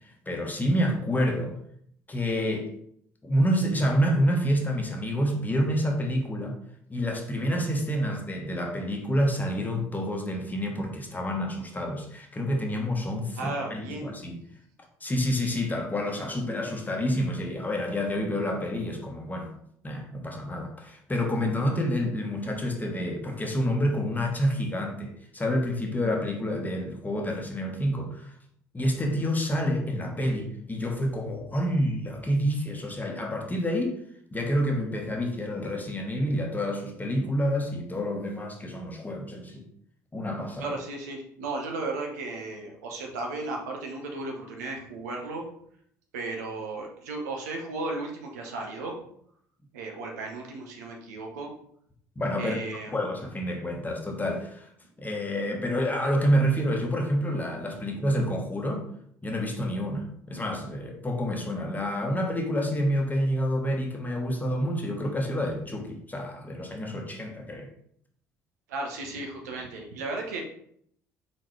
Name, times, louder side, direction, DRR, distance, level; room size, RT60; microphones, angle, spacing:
voice 1, 0.3-1.6 2.1-2.7 3.2-6.6 6.9-14.4 15.0-19.5 19.8-28.3 28.7-34.0 34.3-39.6 40.1-40.7 52.2-52.6 52.9-54.7 55.0-58.9 59.2-67.7, equal, 20° left, 2 dB, 1.1 m, -28 dB
voice 2, 13.4-14.2 40.6-45.5 46.1-48.9 49.7-51.5 52.4-53.0 68.7-70.4, right 2 dB, 80° right, 1 dB, 0.8 m, -35 dB
4.2 x 3.8 x 3.2 m, 0.68 s
hypercardioid pair, 55°, 9 cm